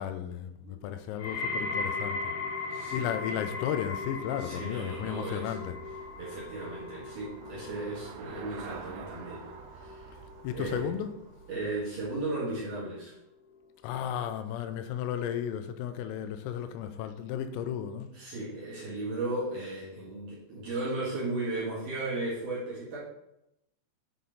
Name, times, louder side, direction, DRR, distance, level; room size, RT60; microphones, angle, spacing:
voice 1, 0.0-2.3 2.9-5.8 10.4-11.1 13.8-18.1, left 9 dB, 90° left, 9 dB, 3.3 m, -34 dB
sound 1, 1.2-12.3 12.6-13.2 13.9-14.0, left 3 dB, 70° left, 2.6 m, -38 dB
voice 2, 2.7-3.1 4.4-5.6 6.2-9.4 9.8-10.1 10.5-10.9 11.5-13.1 18.1-23.0, right 2 dB, 55° right, -8 dB, 2.5 m, -35 dB
Traffic noise roadway noise / Bicycle, 3.8-12.7, right 5 dB, 85° right, 2.9 m, -49 dB
8.6 x 4.3 x 4.0 m, 0.84 s
omnidirectional pair, 5.8 m